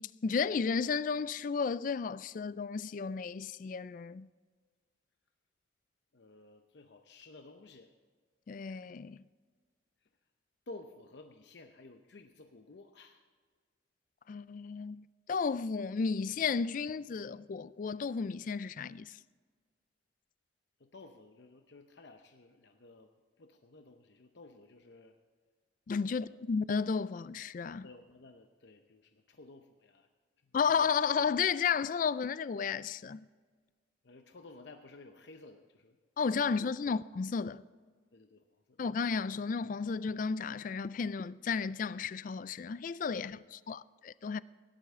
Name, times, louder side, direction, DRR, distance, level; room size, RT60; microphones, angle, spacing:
voice 1, 0.0-4.3 8.5-9.2 14.3-19.2 25.9-27.9 30.5-33.3 36.2-37.6 38.8-44.4, left 5 dB, 45° left, 0.3 m, -33 dB
voice 2, 6.1-7.9 10.0-10.1 10.7-13.3 20.8-23.1 23.4-25.2 26.1-26.4 27.8-30.1 30.4-30.6 34.0-36.0 38.1-38.8 43.1-43.4, left 2 dB, 65° left, 0.7 m, -54 dB
17.0 x 11.5 x 3.7 m
head